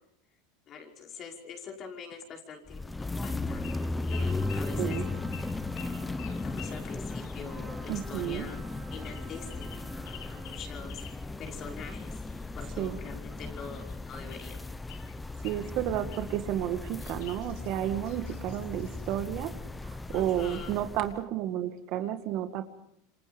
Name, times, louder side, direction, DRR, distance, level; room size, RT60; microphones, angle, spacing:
voice 1, 0.7-5.0 5.8-11.0 11.4-12.1 12.6-14.6 18.2-18.4 20.1-20.7, left 5 dB, 40° left, 1 dB, 5.4 m, -45 dB
sound 1, 2.7-21.2, left 2 dB, 10° left, 0.9 m, -36 dB
sound 2, 3.6-3.8 4.1-7.4 8.9-11.2 11.8-12.8 13.6-14.6 14.9-15.7 16.1-16.4 17.0-19.2 20.1-20.2 20.4-20.7, left 10 dB, 65° left, 2.3 m, -50 dB
Trumpet, 4.1-10.8, right 3 dB, 15° right, 3.2 m, -52 dB
voice 2, 7.9-8.5 12.8-13.0 15.4-19.5 19.8-22.7, right 12 dB, 50° right, 8 dB, 2.0 m, -32 dB
27.5 x 25.5 x 5.3 m, 0.72 s
supercardioid pair, 115°, 0 cm